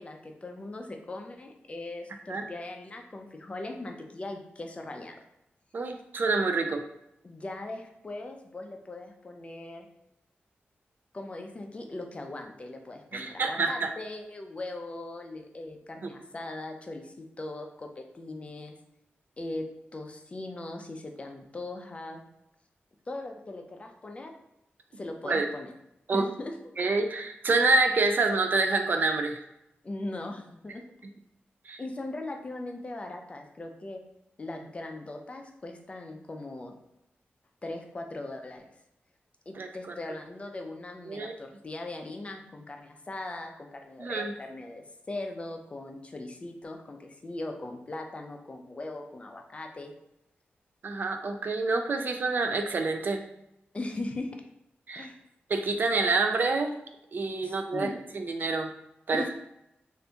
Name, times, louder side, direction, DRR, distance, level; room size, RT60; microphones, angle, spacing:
voice 1, 0.0-5.1 7.2-9.9 11.1-18.8 19.4-19.6 19.9-22.2 23.1-24.3 24.9-25.7 26.1-26.6 29.8-30.8 31.8-34.0 34.4-36.7 37.6-38.6 39.5-49.9 53.7-54.3 54.9-55.2 57.4-58.0 59.1-59.3, left 2 dB, 30° left, 3 dB, 0.4 m, -39 dB
voice 2, 5.7-6.8 13.1-13.9 25.2-25.5 26.1-26.3 26.8-29.4 31.7-31.8 39.5-39.7 41.1-41.3 44.0-44.3 50.8-53.2 54.9-55.1 55.5-56.8 57.1-57.9 58.1-58.7 59.1-59.4, right 3 dB, 50° right, 6 dB, 0.3 m, -27 dB
2.8 x 2.5 x 3.4 m, 0.83 s
wide cardioid pair, 130°, 4 cm